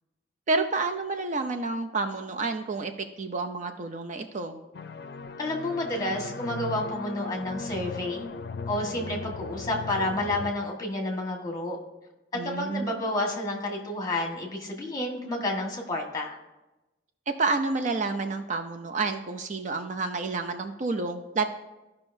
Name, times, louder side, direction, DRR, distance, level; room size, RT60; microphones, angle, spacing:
voice 1, 0.5-4.6 12.3-13.0 17.3-21.4, right 3 dB, 45° right, 6 dB, 0.5 m, -29 dB
sound 1, 4.7-10.5, left 4 dB, 65° left, 0.5 m, -38 dB
voice 2, 5.4-8.3 8.7-11.8 12.3-16.4, left 1 dB, 20° left, 1 dB, 1.5 m, -30 dB
15.0 x 5.7 x 2.6 m, 1.0 s
head